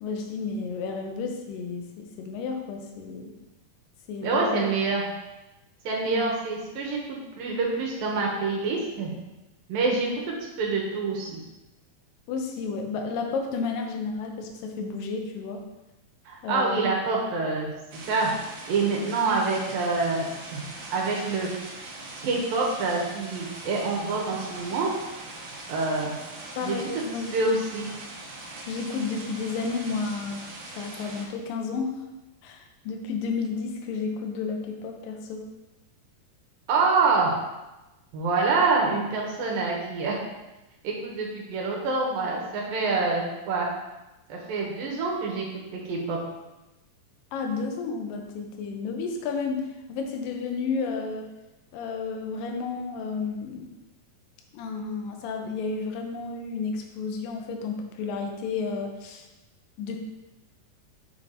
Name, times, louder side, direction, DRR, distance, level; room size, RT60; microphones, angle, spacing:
voice 1, 0.0-3.3 4.1-4.6 6.1-6.2 12.3-15.6 16.4-16.9 26.6-27.4 28.7-30.4 30.8-32.0 32.4-35.5 47.3-51.3 51.7-53.7 54.5-59.3 59.8-60.0, left 4 dB, 85° left, 3 dB, 2.5 m, -32 dB
voice 2, 4.2-5.0 5.8-9.1 9.7-11.4 16.3-17.7 18.1-18.3 18.7-21.5 22.2-24.9 25.7-26.1 26.6-27.0 27.3-27.9 36.7-37.4 38.1-40.2 40.8-43.7 44.3-46.2, right 3 dB, 80° right, -2 dB, 3.0 m, -26 dB
sound 1, 17.9-31.3, right 2 dB, 60° right, 2.2 m, -41 dB
7.1 x 5.9 x 3.9 m, 1.0 s
omnidirectional pair, 4.0 m